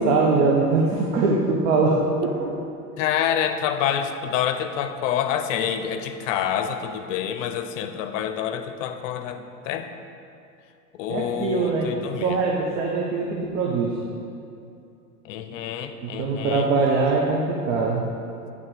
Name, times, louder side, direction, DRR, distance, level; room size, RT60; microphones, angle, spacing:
voice 1, 0.0-2.5 11.1-11.9 12.2-13.9 16.0-18.0, right 3 dB, 55° right, -2 dB, 0.9 m, -22 dB
voice 2, 3.0-9.9 10.9-12.4 15.2-16.7, left 9 dB, 55° left, 9 dB, 0.6 m, -27 dB
9.5 x 3.3 x 5.0 m, 2.6 s
figure-of-eight pair, 85°, 48 cm